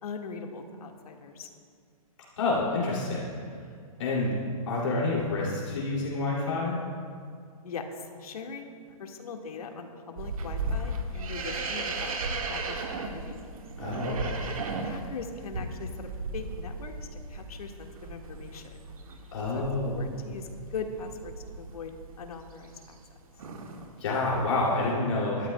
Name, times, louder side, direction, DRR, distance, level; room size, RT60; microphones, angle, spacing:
voice 1, 0.0-1.5 4.2-4.3 7.6-7.8 8.2-8.7 9.0-12.1 12.5-13.4 14.8-16.9 17.3-18.8 19.5-19.6 19.9-21.9 22.2-22.8, left 5 dB, 75° left, 3 dB, 1.7 m, -40 dB
voice 2, 2.4-3.3 4.0-4.4 4.7-6.9 13.8-14.5 19.3-20.0 24.0-25.5, left 2 dB, 50° left, -4 dB, 2.6 m, -28 dB
sound 1, 10.2-23.1 23.4-23.9 24.3-24.9, right 2 dB, 65° right, 1.6 m, -36 dB
24.5 x 12.5 x 2.2 m, 2.2 s
hypercardioid pair, 170°, 19 cm